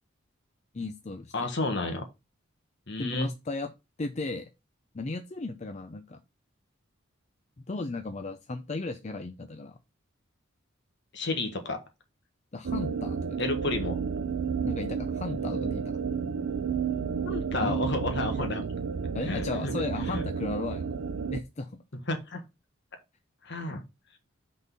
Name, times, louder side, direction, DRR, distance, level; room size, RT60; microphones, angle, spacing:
voice 1, 0.7-1.5 3.0-3.7 4.0-4.5 4.9-6.2 7.7-9.7 12.5-13.4 14.6-15.8 17.6-17.8 19.1-20.9 21.3-21.7, left 3 dB, 35° left, 0.6 m, -35 dB
voice 2, 1.3-2.0 2.9-3.3 11.1-11.8 13.4-14.0 17.2-18.7 19.2-20.2 22.1-22.4 23.4-23.8, left 2 dB, 60° left, 1.5 m, -31 dB
sound 1, 12.6-21.4, right 6 dB, 80° right, 0.5 m, -31 dB
6.1 x 4.0 x 5.4 m
head